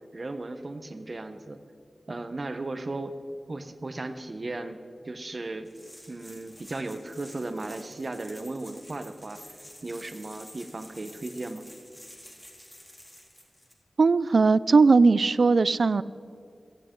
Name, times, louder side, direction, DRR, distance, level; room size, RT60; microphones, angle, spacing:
voice 1, 0.1-1.6 2.1-3.2 3.5-4.8 5.0-5.7 6.1-9.4 9.8-11.7, right 2 dB, 50° right, 9 dB, 1.0 m, -36 dB
sound 1, 5.7-13.7, equal, 10° left, 2.7 m, -50 dB
voice 2, 14.0-16.0, right 4 dB, 70° right, 18 dB, 0.3 m, -19 dB
16.5 x 15.0 x 3.8 m, 2.4 s
cardioid pair, 50°, 0 cm